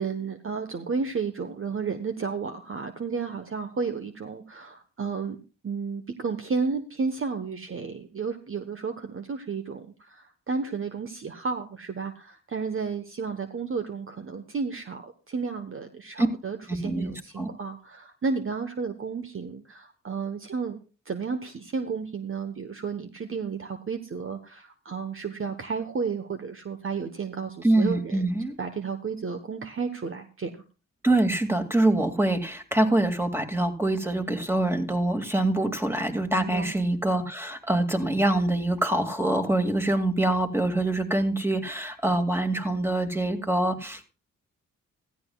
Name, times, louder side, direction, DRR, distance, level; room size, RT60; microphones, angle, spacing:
voice 1, 0.0-5.4 5.6-20.8 21.1-28.3 28.6-30.5 36.3-36.7, right 5 dB, 40° right, 7 dB, 1.2 m, -32 dB
voice 2, 16.7-17.5 27.6-28.6 31.0-44.0, right 1 dB, 5° right, 6 dB, 2.3 m, -25 dB
16.0 x 14.0 x 2.4 m, 0.34 s
supercardioid pair, 55°, 33 cm